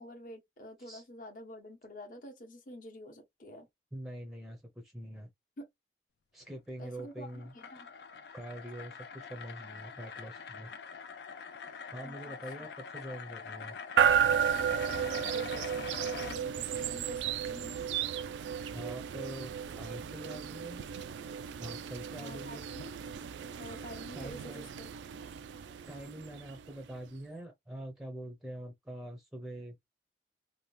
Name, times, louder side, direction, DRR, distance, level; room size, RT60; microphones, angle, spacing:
voice 1, 0.0-3.7 5.6-5.7 6.8-7.9 12.0-12.4 14.9-17.8 22.1-22.9 23.6-24.9, equal, 50° left, 0.8 m, -48 dB
voice 2, 3.9-5.3 6.3-7.5 8.3-10.7 11.9-13.8 18.7-20.8 21.6-22.7 24.1-24.7 25.8-29.8, right 1 dB, ahead, 0.6 m, -44 dB
sound 1, 6.9-16.4, left 6 dB, 70° left, 0.4 m, -45 dB
sound 2, 14.0-27.0, right 8 dB, 90° right, 0.3 m, -33 dB
2.8 x 2.2 x 3.2 m
head